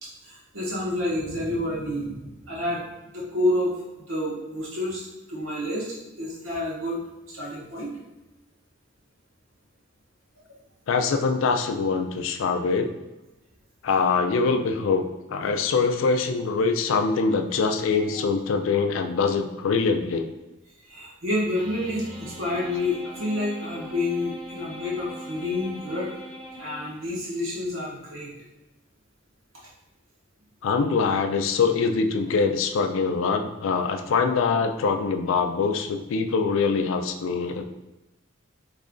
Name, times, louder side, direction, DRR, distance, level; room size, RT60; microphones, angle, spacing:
voice 1, 0.0-2.8 3.1-3.7 4.1-7.0 7.3-7.9 20.9-26.1 26.6-28.3, left 1 dB, 85° right, -5 dB, 1.2 m, -29 dB
voice 2, 10.9-12.9 13.8-15.0 15.3-20.3 30.6-37.6, left 4 dB, 75° left, 6 dB, 0.4 m, -23 dB
sound 1, 21.6-27.4, equal, 25° right, 1.0 m, -40 dB
3.1 x 2.5 x 3.7 m, 1.0 s
head